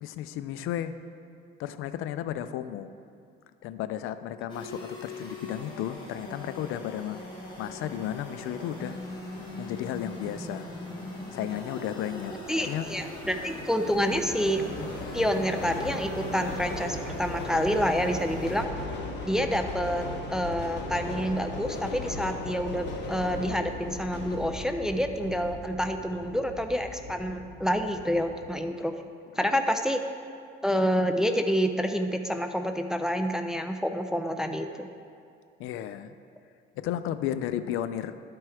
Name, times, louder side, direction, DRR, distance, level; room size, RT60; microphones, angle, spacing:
voice 1, 0.0-0.9 1.6-2.9 3.6-7.2 7.6-8.9 9.6-10.7 11.3-12.9 29.4-29.5 35.6-36.1 36.8-38.2, left 11 dB, 85° left, 12 dB, 0.4 m, -33 dB
sound 1, 4.5-18.6, left 1 dB, 25° left, 1.8 m, -41 dB
sound 2, 12.1-28.5, left 2 dB, 60° left, 1.2 m, -38 dB
voice 2, 12.5-14.6 15.1-18.7 19.2-28.9 29.4-30.0 30.6-34.9, equal, 5° right, 6 dB, 0.3 m, -28 dB
11.5 x 4.5 x 4.8 m, 2.3 s
cardioid pair, 145°, 21 cm